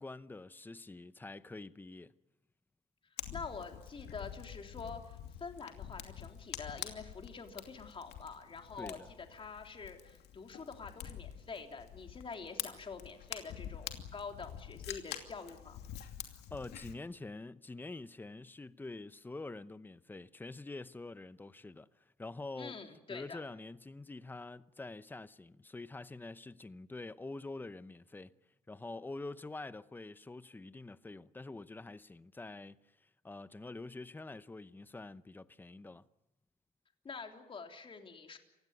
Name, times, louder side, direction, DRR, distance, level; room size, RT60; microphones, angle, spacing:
voice 1, 0.0-2.1 8.8-9.1 16.5-22.8 23.1-28.3 28.7-36.1, left 2 dB, 10° left, 0.8 m, -46 dB
Fire, 3.2-16.9, left 10 dB, 75° left, 2.7 m, -47 dB
voice 2, 3.3-15.8 22.6-23.4 37.0-38.4, left 5 dB, 30° left, 3.5 m, -46 dB
28.0 x 16.5 x 9.6 m
cardioid pair, 110°, 17 cm